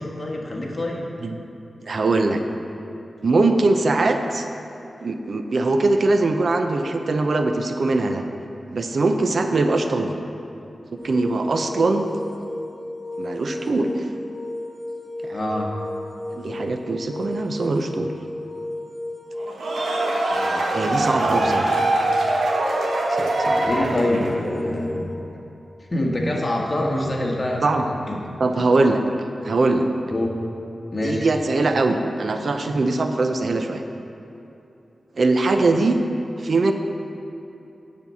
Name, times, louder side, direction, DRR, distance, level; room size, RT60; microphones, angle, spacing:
voice 1, 0.0-1.0 15.3-15.7 20.3-21.7 23.6-25.1 25.9-28.2 30.1-30.3 30.9-31.3, left 1 dB, 35° left, -2 dB, 1.5 m, -26 dB
voice 2, 1.8-2.4 3.2-4.4 5.0-8.2 8.7-10.1 10.9-12.1 13.2-13.9 15.2-15.4 16.3-18.1 20.7-21.8 23.1-23.7 27.6-27.8 28.4-29.0 29.4-29.9 31.0-33.8 35.2-36.0 36.4-36.7, right 3 dB, 65° right, 6 dB, 0.6 m, -21 dB
sound 1, 11.0-25.1, left 1 dB, ahead, 1.7 m, -34 dB
sound 2, 19.4-24.4, right 2 dB, 90° right, 1.1 m, -23 dB
9.5 x 4.5 x 6.9 m, 2.9 s
cardioid pair, 70°, 0 cm